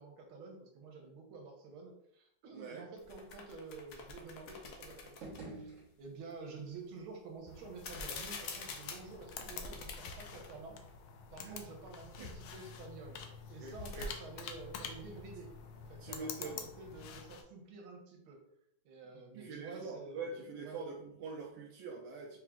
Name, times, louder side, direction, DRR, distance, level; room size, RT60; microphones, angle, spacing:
voice 1, 0.0-5.7 6.0-10.8 11.3-13.2 13.5-18.4 18.8-20.8, right 4 dB, 90° right, 2 dB, 1.7 m, -50 dB
voice 2, 2.5-2.9 11.4-11.7 12.2-12.3 13.6-14.1 15.9-16.7 19.3-22.4, right 4 dB, 70° right, -1 dB, 1.2 m, -44 dB
sound 1, 3.0-5.5 7.7-10.5 10.9-11.0 13.5-14.1, left 3 dB, 70° left, 1.0 m, -46 dB
sound 2, 5.0-6.5, right 2 dB, 45° right, 1.4 m, -49 dB
sound 3, 7.5-17.4, left 6 dB, 90° left, 1.5 m, -48 dB
4.8 x 3.6 x 2.4 m, 0.75 s
omnidirectional pair, 2.3 m